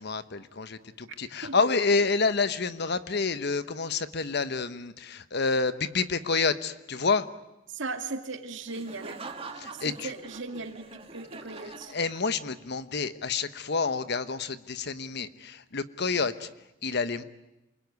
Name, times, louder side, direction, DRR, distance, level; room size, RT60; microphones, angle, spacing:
voice 1, 0.0-7.3 9.6-10.1 11.9-16.5 16.8-17.2, left 4 dB, 55° left, 12 dB, 1.1 m, -28 dB
voice 2, 7.7-9.2 9.7-12.0, right 3 dB, 65° right, 5 dB, 2.5 m, -37 dB
Laughter, 8.7-12.6, right 3 dB, 30° right, 1.9 m, -44 dB
28.5 x 21.5 x 9.5 m, 0.93 s
head